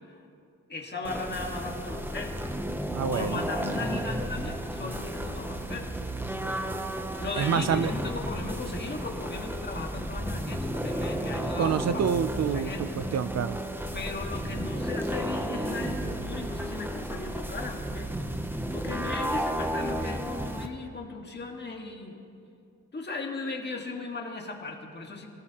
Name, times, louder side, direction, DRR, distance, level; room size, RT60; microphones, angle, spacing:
voice 1, 0.7-2.4 3.1-6.0 7.2-11.8 12.5-13.0 13.9-18.1 18.7-22.2 22.9-25.3, left 3 dB, 30° left, 1 dB, 1.7 m, -37 dB
sound 1, 1.0-20.7, right 1 dB, 5° right, 0.6 m, -33 dB
voice 2, 2.9-3.4 7.4-7.9 11.6-13.6, right 7 dB, 50° right, 11 dB, 0.5 m, -27 dB
27.0 x 17.5 x 2.9 m, 2.6 s
wide cardioid pair, 175°, 33 cm